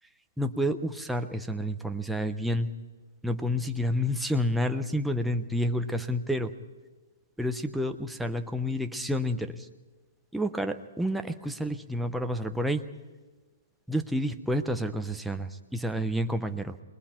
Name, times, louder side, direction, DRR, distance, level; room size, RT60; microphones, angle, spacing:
voice 1, 0.4-2.7 3.2-6.5 7.4-9.7 10.3-12.8 13.9-16.8, equal, ahead, 6 dB, 0.9 m, -29 dB
28.0 x 21.5 x 4.5 m, 1.3 s
hypercardioid pair, 140°, 0 cm